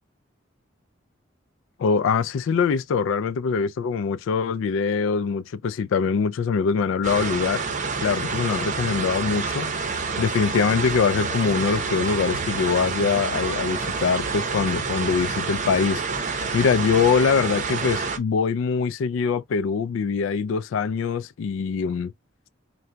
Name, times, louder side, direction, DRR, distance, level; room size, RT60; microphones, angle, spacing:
voice 1, 1.8-7.6 8.0-9.7 10.2-22.1, left 5 dB, 85° left, 0.3 m, -23 dB
sound 1, 7.0-18.2, right 4 dB, 40° right, 0.7 m, -28 dB
3.8 x 2.2 x 4.3 m
head